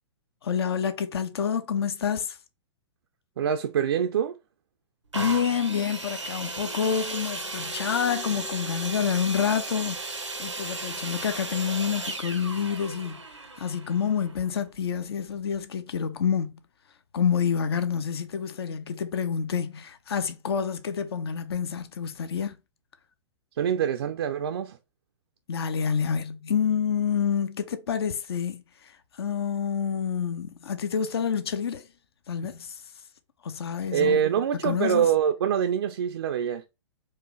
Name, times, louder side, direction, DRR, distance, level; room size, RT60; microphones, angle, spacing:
voice 1, 0.4-2.4 5.1-13.2 13.6-16.6 17.1-22.6 25.5-31.9 32.3-32.8 33.4-34.2 34.6-35.1, left 7 dB, 60° left, 0.6 m, -28 dB
voice 2, 3.4-4.4 23.6-24.8 33.9-36.6, right 8 dB, 60° right, 0.4 m, -25 dB
sound 1, 5.1-14.8 15.5-15.6, right 3 dB, 90° right, 0.7 m, -36 dB
4.6 x 2.3 x 3.0 m
figure-of-eight pair, 110°, 15 cm